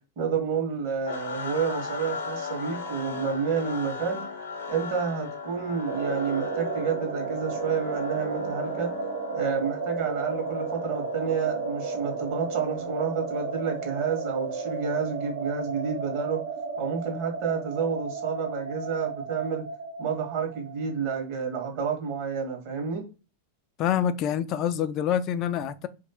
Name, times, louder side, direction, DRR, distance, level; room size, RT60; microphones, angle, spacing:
voice 1, 0.2-4.2 4.7-8.9 9.3-16.4 16.8-19.6 20.0-23.0, right 6 dB, 45° right, 1.3 m, -29 dB
sound 1, 1.1-15.2, left 4 dB, 65° left, 0.7 m, -39 dB
sound 2, 5.9-21.3, right 4 dB, 60° right, 0.7 m, -33 dB
voice 2, 23.8-25.9, left 9 dB, 35° left, 0.3 m, -26 dB
3.2 x 2.8 x 2.9 m
figure-of-eight pair, 90°, 0 cm